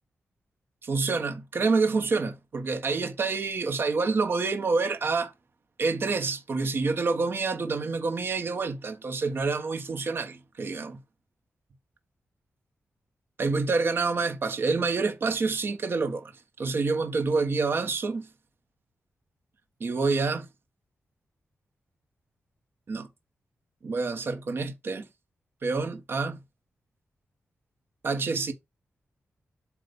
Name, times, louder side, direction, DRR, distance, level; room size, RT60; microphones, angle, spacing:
voice 1, 0.8-5.3 5.8-11.0 13.4-16.3 16.6-18.3 19.8-20.5 22.9-23.1 23.8-25.0 25.6-26.4 28.0-28.5, right 4 dB, 50° right, 1.3 m, -27 dB
8.1 x 2.8 x 5.3 m
wide cardioid pair, 140°, 5 cm